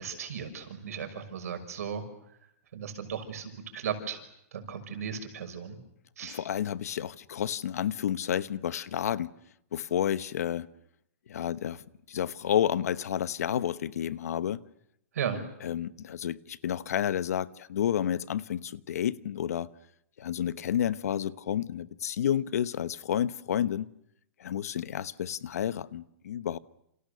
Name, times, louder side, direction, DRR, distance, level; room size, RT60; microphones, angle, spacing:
voice 1, 0.0-2.0 2.7-4.2 4.5-5.8 6.2-6.4 15.1-15.4, right 7 dB, 75° right, 6.1 m, -36 dB
voice 2, 6.2-9.3 9.7-10.7 11.3-14.6 15.6-19.7 20.2-23.9 24.4-26.6, left 10 dB, 75° left, 1.1 m, -30 dB
29.5 x 28.0 x 6.8 m
hypercardioid pair, 175°, 8 cm